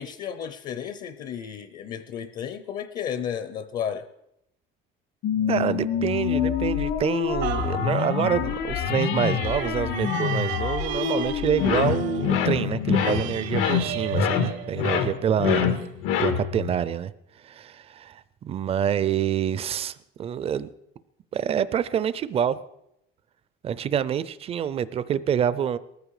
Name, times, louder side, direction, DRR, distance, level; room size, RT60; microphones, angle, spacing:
voice 1, 0.0-4.1, left 8 dB, 45° left, 12 dB, 0.8 m, -33 dB
sound 1, 5.2-14.0, left 9 dB, 65° left, 1.5 m, -28 dB
voice 2, 5.5-15.8 16.2-17.1 17.4-20.7 21.3-22.6 23.6-25.8, right 9 dB, 30° right, 16 dB, 0.5 m, -27 dB
sound 2, 7.4-15.3 15.8-15.9, right 11 dB, 70° right, 1.1 m, -36 dB
sound 3, 11.6-16.7, left 8 dB, 90° left, 1.8 m, -25 dB
19.0 x 14.0 x 4.9 m, 0.82 s
cardioid pair, 175°, 20 cm